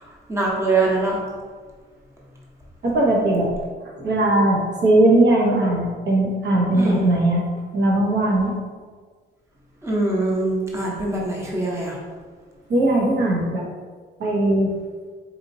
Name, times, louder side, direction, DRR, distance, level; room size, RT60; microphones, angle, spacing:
voice 1, 0.3-1.2 6.7-7.1 9.8-11.9, right 2 dB, 15° right, -4 dB, 0.9 m, -23 dB
voice 2, 2.8-3.5 4.0-7.5 7.7-8.5 12.7-13.6 14.2-14.7, right 1 dB, 60° right, -3 dB, 0.9 m, -19 dB
4.2 x 2.8 x 2.6 m, 1.5 s
cardioid pair, 90°, 20 cm